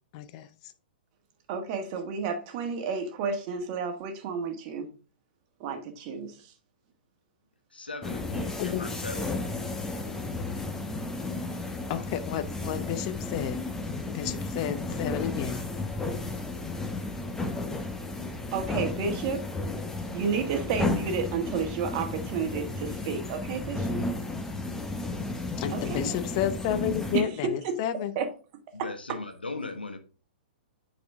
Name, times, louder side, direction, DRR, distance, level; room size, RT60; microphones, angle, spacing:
voice 1, 0.1-0.5 8.6-8.8 11.9-13.6 14.1-15.6 25.6-28.1, left 11 dB, 45° left, 0.7 m, -31 dB
voice 2, 1.5-4.9 5.6-6.4 18.5-19.4 20.1-24.1 25.7-26.1 27.1-27.2 27.6-27.8 28.1-28.3, right 5 dB, 40° right, 1.6 m, -31 dB
voice 3, 7.7-9.7 28.7-30.0, left 3 dB, 85° left, 1.2 m, -38 dB
sound 1, 8.0-27.2, left 2 dB, 10° left, 1.1 m, -33 dB
8.4 x 4.3 x 3.5 m
figure-of-eight pair, 115°, 5 cm